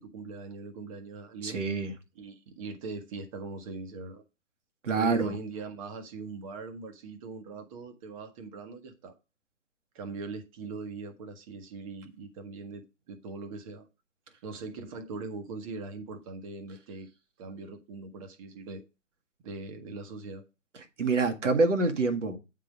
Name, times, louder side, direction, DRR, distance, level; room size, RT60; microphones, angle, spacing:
voice 1, 0.0-1.6 2.1-4.2 4.9-9.2 9.9-13.9 14.4-17.1 17.4-18.8 19.4-20.5, right 3 dB, 25° right, 1.2 m, -41 dB
voice 2, 1.4-1.9 4.8-5.3 21.0-22.4, right 3 dB, 65° right, 1.5 m, -26 dB
8.9 x 3.8 x 5.0 m
figure-of-eight pair, 135°, 38 cm